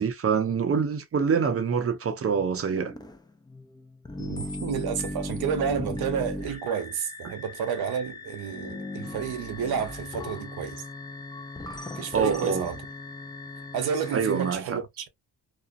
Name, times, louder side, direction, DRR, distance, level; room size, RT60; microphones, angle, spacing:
voice 1, 0.0-2.9 7.2-7.3 12.1-12.7 14.1-14.8, right 6 dB, 40° right, 0.6 m, -25 dB
sound 1, 2.7-14.5, left 2 dB, 10° left, 0.4 m, -38 dB
voice 2, 4.2-10.8 12.0-12.8 13.7-15.1, right 7 dB, 85° right, 0.7 m, -30 dB
2.5 x 2.1 x 2.4 m
cardioid pair, 80°, 36 cm